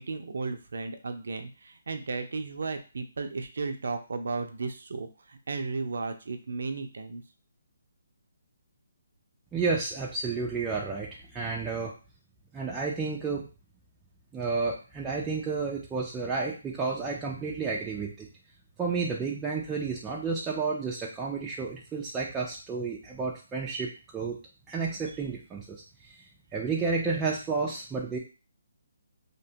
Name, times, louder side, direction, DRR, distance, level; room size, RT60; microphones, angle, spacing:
voice 1, 0.0-5.1 5.5-7.2, right 4 dB, 70° right, 7 dB, 0.4 m, -34 dB
voice 2, 9.5-11.9 12.5-13.5 14.3-18.3 18.8-24.4 24.7-25.8 26.0-26.1 26.5-28.2, right 4 dB, 10° right, -3 dB, 0.3 m, -31 dB
2.7 x 2.2 x 2.7 m, 0.34 s
hypercardioid pair, 160°, 0 cm